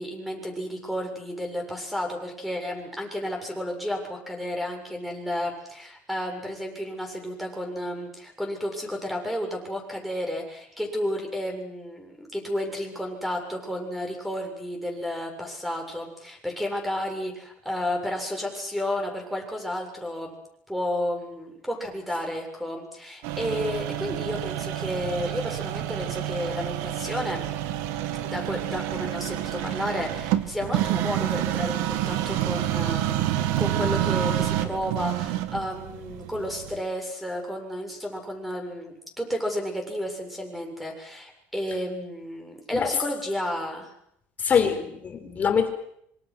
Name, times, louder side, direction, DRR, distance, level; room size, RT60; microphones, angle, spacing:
voice 1, 0.0-20.3 20.7-27.4 28.1-43.9 44.6-44.7, left 1 dB, ahead, 3 dB, 7.4 m, -32 dB
sound 1, 23.2-36.8, right 12 dB, 85° right, 2.2 m, -28 dB
voice 2, 44.4-45.7, left 7 dB, 30° left, 6 dB, 4.8 m, -24 dB
26.5 x 25.5 x 6.4 m, 0.72 s
cardioid pair, 140°, 5 cm